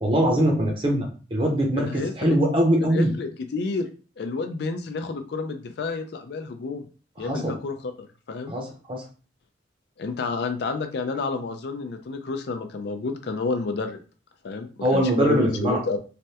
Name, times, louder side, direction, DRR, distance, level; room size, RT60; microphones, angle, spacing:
voice 1, 0.0-3.1 7.2-7.6 8.5-9.0 14.8-15.8, equal, 30° right, 1 dB, 0.7 m, -22 dB
voice 2, 1.8-2.4 2.8-3.9 4.2-6.8 7.2-8.5 10.0-14.0 14.4-16.0, left 4 dB, 60° left, 7 dB, 0.4 m, -30 dB
3.2 x 2.1 x 2.8 m, 0.37 s
head